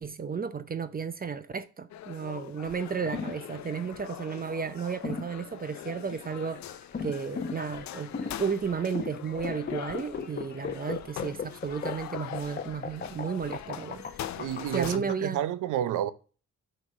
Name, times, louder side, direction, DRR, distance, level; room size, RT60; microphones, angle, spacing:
voice 1, 0.0-6.6 7.0-14.0 14.7-15.4, right 6 dB, 30° right, 0.7 m, -33 dB
sound 1, 1.9-15.0, left 12 dB, 65° left, 0.7 m, -43 dB
sound 2, 2.7-15.1, left 5 dB, 30° left, 1.0 m, -37 dB
voice 2, 14.4-16.1, right 11 dB, 80° right, 0.8 m, -30 dB
6.1 x 5.2 x 5.4 m
cardioid pair, 90°, 30 cm